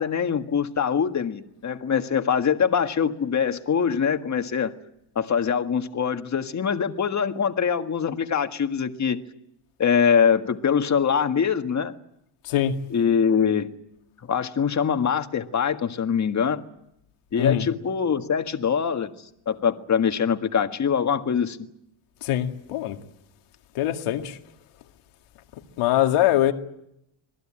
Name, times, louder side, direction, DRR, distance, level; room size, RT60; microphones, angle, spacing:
voice 1, 0.0-4.7 5.1-9.2 9.8-11.9 12.9-13.7 14.3-16.6 17.3-19.1 19.4-21.6, left 7 dB, 35° left, 1.8 m, -23 dB
voice 2, 22.2-23.0 23.7-24.4 25.8-26.5, left 12 dB, 85° left, 2.3 m, -22 dB
26.5 x 19.0 x 8.9 m
cardioid pair, 120°, 49 cm